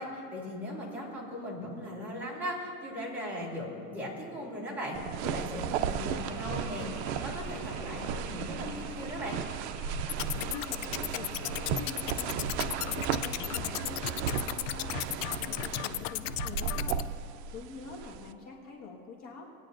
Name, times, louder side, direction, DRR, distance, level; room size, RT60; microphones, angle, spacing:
voice 1, 0.0-5.0 5.2-6.9 7.1-9.4, equal, 5° right, -7 dB, 2.8 m, -38 dB
sound 1, 4.9-18.3, right 8 dB, 55° right, 0.5 m, -35 dB
Mechanisms, 5.5-15.2, right 1 dB, 25° right, 2.8 m, -46 dB
sound 2, 10.1-17.0, left 14 dB, 65° left, 0.5 m, -35 dB
voice 2, 10.3-17.0 17.5-19.5, left 4 dB, 40° left, -4 dB, 1.6 m, -46 dB
21.5 x 9.7 x 2.6 m, 2.4 s
supercardioid pair, 160°, 42 cm